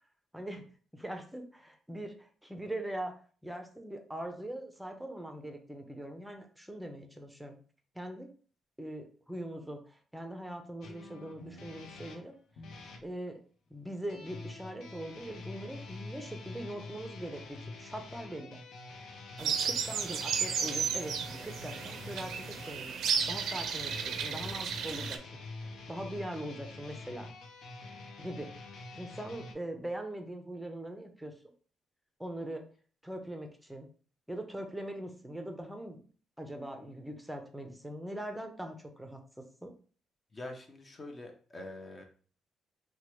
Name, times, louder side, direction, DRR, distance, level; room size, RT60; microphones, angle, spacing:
voice 1, 0.3-0.7 0.9-3.1 3.4-7.6 7.9-8.3 8.8-12.4 13.0-13.4 13.7-18.6 19.4-22.9 23.3-25.4 25.9-27.3 28.2-28.5 29.0-31.3 32.2-32.7 33.0-33.9 34.3-36.0 36.4-39.7, right 1 dB, 5° right, 4 dB, 0.6 m, -41 dB
sound 1, 10.8-13.0 14.1-29.5, left 3 dB, 75° left, 0.5 m, -46 dB
sound 2, 19.4-25.2, right 6 dB, 75° right, 0.4 m, -33 dB
voice 2, 40.3-42.0, left 2 dB, 35° left, 3 dB, 0.7 m, -45 dB
2.9 x 2.2 x 3.0 m, 0.42 s
cardioid pair, 85°, 0 cm